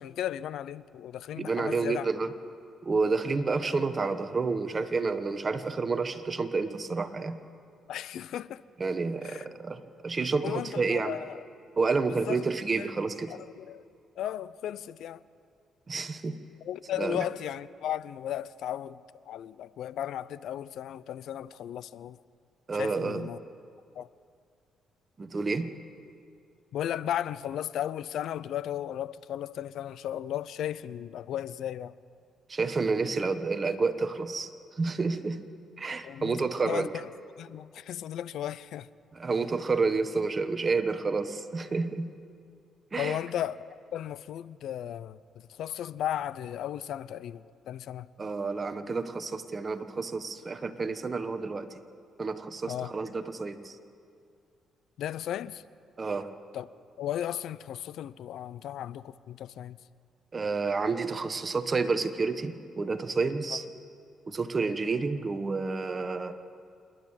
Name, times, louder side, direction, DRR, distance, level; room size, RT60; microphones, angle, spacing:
voice 1, 0.0-2.1 7.9-8.6 9.2-9.5 10.4-11.4 12.1-12.4 12.8-12.9 13.3-13.8 14.2-15.2 16.6-19.0 19.3-22.2 22.7-23.4 24.0-24.1 26.7-31.9 35.8-37.1 37.4-38.9 43.0-48.1 52.7-52.9 55.0-55.6 56.5-56.7 57.0-59.8 63.5-63.6, left 11 dB, 75° left, 0.5 m, -35 dB
voice 2, 1.4-2.3 2.8-7.4 8.8-11.2 11.8-13.3 15.9-16.4 17.0-17.2 22.7-23.3 25.2-25.7 32.5-34.5 34.8-35.4 35.8-36.9 39.1-42.1 42.9-43.2 48.2-51.7 52.2-53.7 56.0-56.3 60.3-63.6 64.3-66.3, right 4 dB, 30° right, 1.3 m, -29 dB
27.0 x 11.0 x 8.9 m
cardioid pair, 90°, 0 cm